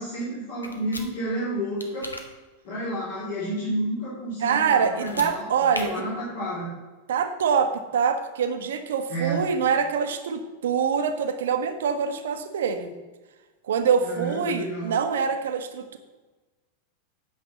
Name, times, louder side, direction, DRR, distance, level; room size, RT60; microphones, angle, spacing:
voice 1, 0.0-2.1 2.6-5.4 5.7-6.7 9.1-9.4 14.0-14.9, right 1 dB, 55° left, -7 dB, 3.4 m, -30 dB
sound 1, 0.6-1.1 1.8-2.2 4.9-5.3 5.7-5.8, left 2 dB, 80° left, 1.1 m, -35 dB
voice 2, 4.4-6.0 7.1-12.9 13.7-16.0, right 6 dB, 60° right, 8 dB, 1.0 m, -25 dB
9.0 x 6.5 x 6.5 m, 1.2 s
figure-of-eight pair, 90°, 0 cm